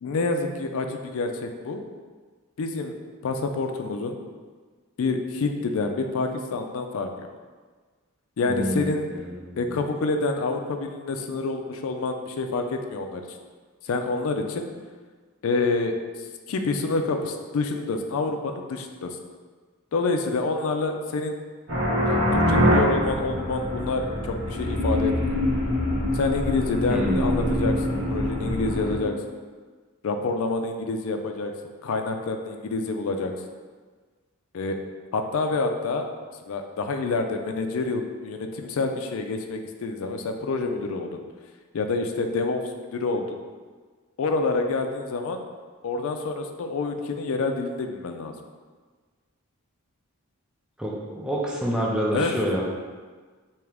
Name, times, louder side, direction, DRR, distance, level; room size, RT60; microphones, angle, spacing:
voice 1, 0.0-1.8 2.6-2.9 3.2-4.2 5.0-7.3 8.4-9.1 9.6-13.4 13.8-14.7 15.4-16.0 16.5-19.2 19.9-21.4 22.1-25.4 26.1-27.8 28.1-29.2 30.0-31.5 31.8-33.3 34.5-34.8 35.1-36.0 36.5-41.2 41.7-43.4 44.2-45.4 45.8-48.3 52.1-52.3, left 3 dB, 65° left, 5 dB, 0.4 m, -27 dB
voice 2, 8.4-9.7 26.9-27.5 50.8-52.6, equal, 5° right, -3 dB, 0.4 m, -28 dB
sound 1, 21.7-28.9, left 1 dB, 80° right, 1.4 m, -24 dB
3.5 x 2.9 x 3.3 m, 1.5 s
head